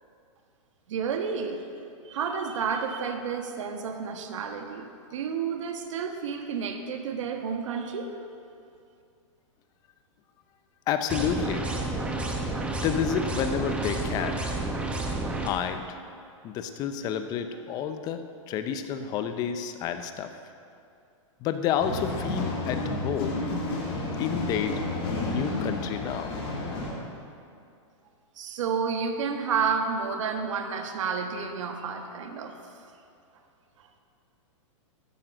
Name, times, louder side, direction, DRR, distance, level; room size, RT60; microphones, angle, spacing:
voice 1, 0.9-1.7 2.0-8.1 28.4-32.6 33.8-33.9, right 6 dB, 70° right, 5 dB, 1.4 m, -30 dB
voice 2, 10.9-11.7 12.7-14.4 15.4-16.0 16.4-18.2 18.5-20.3 21.4-23.4 24.2-24.8 25.2-26.3, left 8 dB, 25° left, 8 dB, 0.7 m, -30 dB
sound 1, 11.1-15.5, right 2 dB, 5° right, 1.0 m, -30 dB
sound 2, 21.8-26.9, left 2 dB, 45° left, 3.3 m, -31 dB
13.5 x 9.3 x 6.4 m, 2.5 s
supercardioid pair, 160°, 16 cm